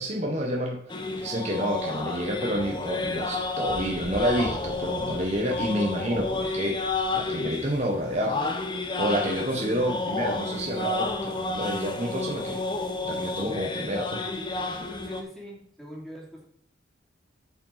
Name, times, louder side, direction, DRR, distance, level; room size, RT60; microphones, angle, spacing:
voice 1, 0.0-6.8 7.1-8.5 8.9-12.6 13.0-14.2, equal, 35° right, 0 dB, 1.3 m, -29 dB
sound 1, 0.9-15.2, left 3 dB, 25° left, 1.0 m, -31 dB
voice 2, 15.0-16.4, equal, ahead, -3 dB, 2.8 m, -42 dB
9.7 x 5.4 x 5.8 m, 0.66 s
head